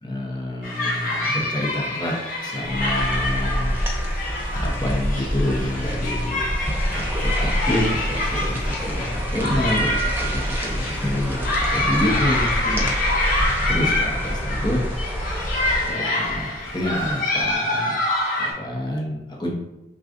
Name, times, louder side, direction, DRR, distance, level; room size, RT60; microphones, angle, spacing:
voice 1, 0.0-2.1 2.4-4.3 4.6-6.5 6.9-14.8 15.8-18.0 18.4-19.5, left 1 dB, 25° left, -2 dB, 0.9 m, -28 dB
sound 1, 0.6-18.5, left 1 dB, 55° left, 1.2 m, -26 dB
sound 2, 2.6-15.9, equal, 10° right, 0.7 m, -27 dB
6.1 x 2.3 x 2.6 m, 0.94 s
head